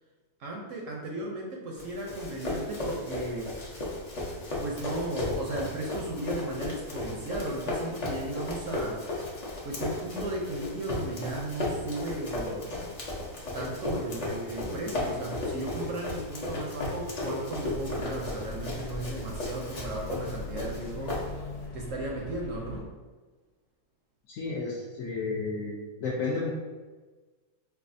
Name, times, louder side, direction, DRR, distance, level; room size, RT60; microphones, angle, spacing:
voice 1, 0.4-3.5 4.6-12.7 13.5-21.5 21.7-22.9, right 2 dB, 65° right, -1 dB, 0.8 m, -36 dB
Run, 1.8-21.6, left 2 dB, 50° left, 0.5 m, -35 dB
sound 1, 17.6-22.8, left 2 dB, 85° left, 1.2 m, -40 dB
voice 2, 24.3-25.7 26.0-26.5, left 4 dB, 70° left, -4 dB, 0.8 m, -32 dB
4.6 x 2.3 x 2.5 m, 1.3 s
omnidirectional pair, 1.7 m